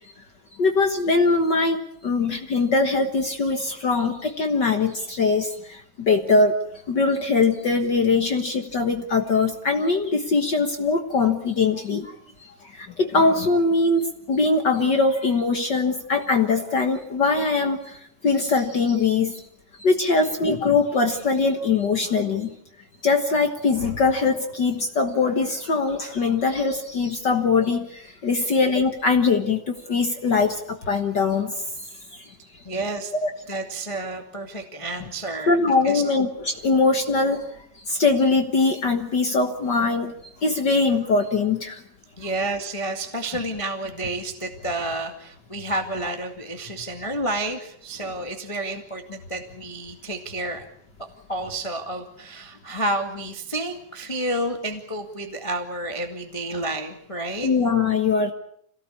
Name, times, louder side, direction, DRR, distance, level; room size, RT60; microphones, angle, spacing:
voice 1, 0.6-6.6 6.9-12.1 12.7-19.4 19.8-22.5 23.0-31.6 33.1-33.3 35.5-37.5 37.9-40.1 40.4-41.8 57.4-58.3, left 4 dB, 65° left, 5 dB, 1.1 m, -22 dB
voice 2, 32.6-33.1 33.5-35.6 35.8-36.0 42.2-50.7 51.3-57.5, right 1 dB, 15° left, 4 dB, 1.0 m, -30 dB
27.0 x 18.0 x 8.5 m, 0.72 s
omnidirectional pair, 4.2 m